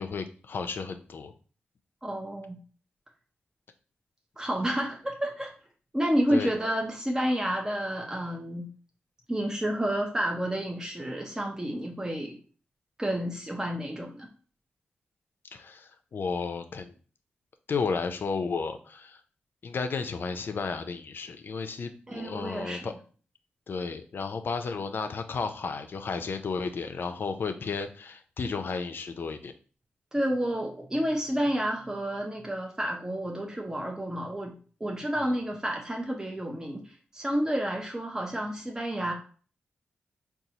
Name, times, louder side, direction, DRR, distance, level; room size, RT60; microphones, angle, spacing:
voice 1, 0.0-1.3 6.3-6.5 15.5-16.9 17.7-19.2 19.6-22.9 23.7-29.5 35.2-35.3, left 5 dB, 65° left, 8 dB, 0.4 m, -33 dB
voice 2, 2.0-2.6 4.4-5.5 5.9-8.7 9.3-12.4 13.0-14.3 22.1-22.8 30.1-39.1, equal, 15° right, 1 dB, 0.6 m, -30 dB
3.9 x 2.3 x 2.8 m, 0.40 s
cardioid pair, 50°, 4 cm